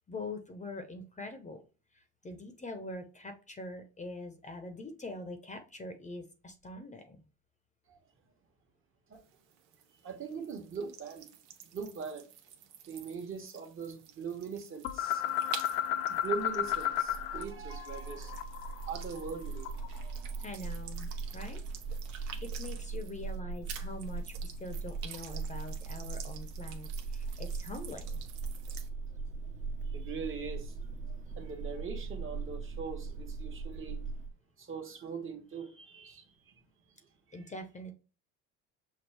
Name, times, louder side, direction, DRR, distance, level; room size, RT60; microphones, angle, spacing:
voice 1, 0.1-1.6 1.9-7.2 20.4-21.6 22.1-28.2 37.3-37.9, left 2 dB, 20° left, 0.8 m, -44 dB
sound 1, 9.1-23.4 23.6-28.9, right 9 dB, 75° right, 1.0 m, -50 dB
voice 2, 10.0-11.3 11.7-12.3 12.9-15.2 16.1-18.3 18.9-19.7 29.9-30.7 31.0-34.0 34.6-36.5 37.3-37.4, right 5 dB, 35° right, 1.3 m, -41 dB
sound 2, 14.8-17.4 17.7-20.0, left 11 dB, 75° left, 0.6 m, -33 dB
sound 3, 16.4-34.3, right 4 dB, 20° right, 0.8 m, -40 dB
6.3 x 2.3 x 3.4 m
supercardioid pair, 90°, 35 cm